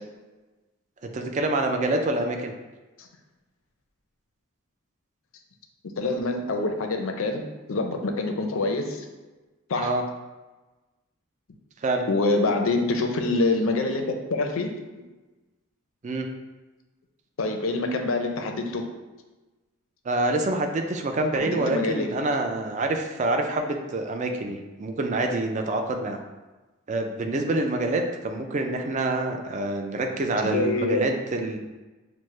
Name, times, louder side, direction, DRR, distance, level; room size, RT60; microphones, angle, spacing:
voice 1, 1.0-2.5 9.8-10.0 11.8-12.1 16.0-16.3 20.1-26.2 26.9-31.6, right 2 dB, 35° right, 4 dB, 0.3 m, -26 dB
voice 2, 6.0-7.4 7.7-9.1 9.7-9.9 12.1-14.7 17.4-18.8 21.4-22.1 30.4-31.0, left 2 dB, 70° left, 4 dB, 0.5 m, -25 dB
5.9 x 2.1 x 3.1 m, 1.2 s
head